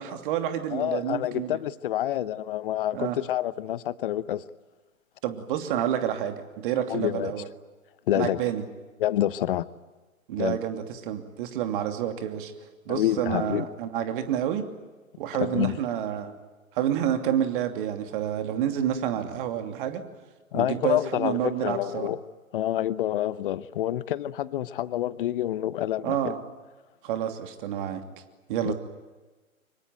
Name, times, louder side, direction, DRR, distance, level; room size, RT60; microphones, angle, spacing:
voice 1, 0.0-1.6 2.9-3.2 5.2-7.5 8.1-8.6 10.3-12.5 12.9-14.6 15.2-16.3 16.7-20.0 20.5-22.1 26.0-26.4 27.0-28.0 28.5-28.7, right 10 dB, 40° right, 7 dB, 2.9 m, -29 dB
voice 2, 0.7-4.4 6.9-7.4 8.1-8.4 9.0-9.6 10.4-10.6 12.9-13.7 15.3-15.8 20.5-22.2 22.5-26.3 28.6-28.7, left 12 dB, 40° left, 18 dB, 1.0 m, -28 dB
25.5 x 22.5 x 9.3 m, 1.2 s
figure-of-eight pair, 120°, 41 cm